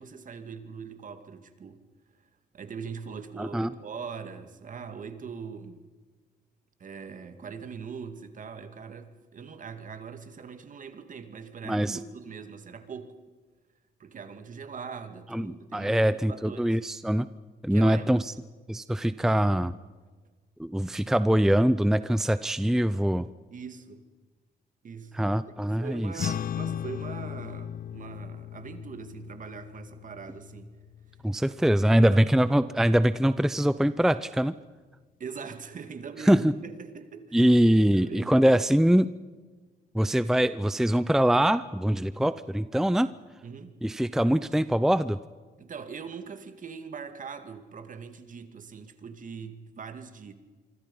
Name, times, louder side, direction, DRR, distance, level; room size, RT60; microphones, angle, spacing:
voice 1, 0.0-1.8 2.5-5.9 6.8-13.2 14.0-16.8 17.7-18.3 23.5-24.0 24.8-25.1 25.5-30.8 31.7-32.2 35.2-37.5 37.9-38.6 43.4-43.8 45.6-50.3, right 6 dB, 50° right, 8 dB, 2.4 m, -41 dB
voice 2, 3.4-3.7 11.6-12.0 15.3-17.3 17.6-18.2 18.7-19.7 20.6-23.3 25.1-26.3 31.2-34.6 36.3-36.5 37.3-39.1 39.9-43.1 43.8-45.2, right 1 dB, 5° right, 14 dB, 0.6 m, -23 dB
sound 1, 26.2-32.8, left 10 dB, 55° left, 0.6 m, -37 dB
26.0 x 25.0 x 5.6 m, 1.4 s
cardioid pair, 100°, 17 cm